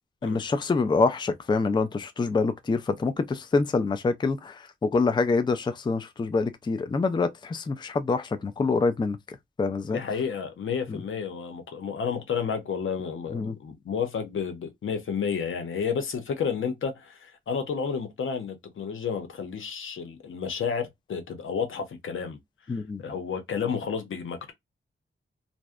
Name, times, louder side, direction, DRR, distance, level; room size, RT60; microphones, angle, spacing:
voice 1, 0.2-9.2 9.6-10.0 10.9-11.0 13.3-13.6 22.7-23.0, left 4 dB, 25° left, 0.4 m, -26 dB
voice 2, 9.9-22.4 22.7-24.5, left 6 dB, 85° left, 0.7 m, -31 dB
2.6 x 2.1 x 2.3 m
wide cardioid pair, 95°, 20 cm